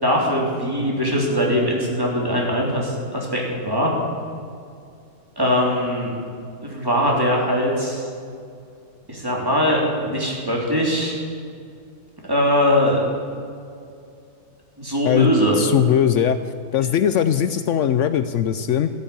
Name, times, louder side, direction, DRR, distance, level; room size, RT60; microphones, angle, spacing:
voice 1, 0.0-3.9 5.4-6.1 6.6-8.1 9.1-11.1 12.3-13.0 14.8-15.6, equal, 10° right, -3 dB, 3.3 m, -21 dB
voice 2, 15.1-16.4 16.7-18.9, left 9 dB, 85° left, 11 dB, 0.6 m, -20 dB
13.5 x 10.5 x 8.7 m, 2.4 s
omnidirectional pair, 1.9 m